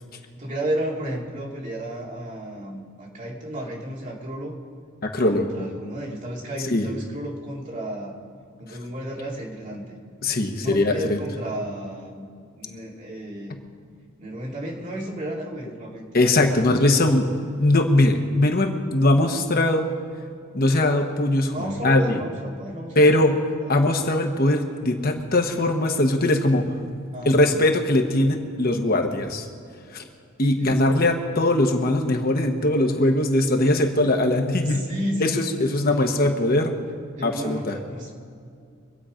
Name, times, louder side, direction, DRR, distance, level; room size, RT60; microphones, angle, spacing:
voice 1, 0.4-4.6 5.2-8.2 8.6-10.0 10.6-12.3 12.6-13.5 14.2-16.9 21.5-23.7 27.1-27.6 30.6-30.8 33.7-33.9 34.6-36.3 37.2-38.1, right 1 dB, 40° right, -3 dB, 2.9 m, -33 dB
voice 2, 5.0-5.5 6.6-6.9 10.2-11.2 16.1-17.2 17.5-19.9 20.5-21.5 21.8-22.2 22.9-23.4 23.7-26.6 27.2-29.5 29.9-30.0 30.4-34.9 35.2-35.3 35.6-36.8 37.2-37.7, left 1 dB, 45° left, 4 dB, 1.2 m, -20 dB
25.0 x 8.7 x 5.1 m, 2.3 s
head